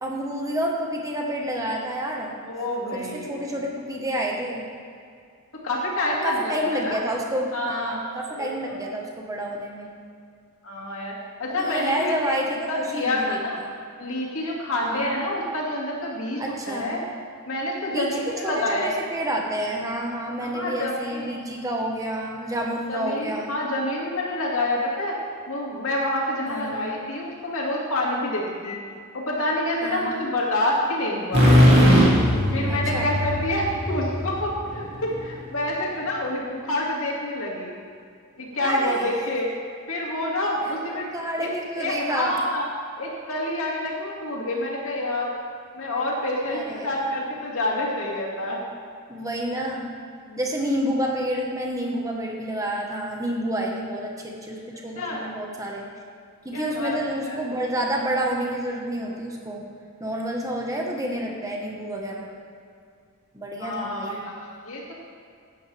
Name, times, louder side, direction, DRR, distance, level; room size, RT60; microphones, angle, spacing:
voice 1, 0.0-2.4 2.9-4.6 6.2-9.9 11.5-13.7 14.8-15.1 16.4-16.9 17.9-18.1 18.4-23.5 26.5-26.9 29.8-30.2 32.7-33.1 38.6-39.1 40.9-42.4 46.5-47.4 49.1-49.9 50.4-55.9 56.4-59.6 60.0-62.3 63.3-64.3, right 1 dB, 15° right, -1 dB, 1.3 m, -29 dB
voice 2, 2.4-3.3 5.5-7.0 7.5-8.8 10.6-11.1 11.4-13.6 14.0-17.0 17.5-18.9 20.4-21.2 22.9-25.2 25.5-28.8 29.1-31.7 32.5-37.7 38.4-39.5 39.9-41.1 41.4-41.5 41.8-42.6 43.0-45.3 45.8-48.6 50.3-50.4 55.0-55.3 56.5-57.0 57.3-57.4 63.6-64.9, left 1 dB, 65° left, -3 dB, 2.4 m, -27 dB
sound 1, 31.3-35.1, equal, 50° right, 2.6 m, -19 dB
15.5 x 9.2 x 3.4 m, 2.3 s
head